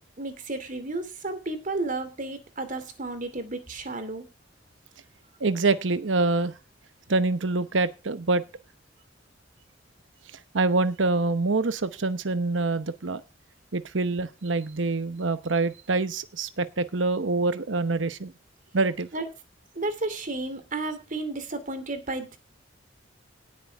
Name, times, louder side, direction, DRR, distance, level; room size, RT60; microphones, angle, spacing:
voice 1, 0.2-4.2 19.1-19.2 19.8-22.4, right 2 dB, 45° right, 10 dB, 2.6 m, -32 dB
voice 2, 5.4-6.6 7.1-8.4 10.5-13.2 13.7-18.3 18.7-19.1, right 3 dB, 85° right, 13 dB, 0.9 m, -25 dB
18.0 x 8.6 x 3.5 m, 0.29 s
head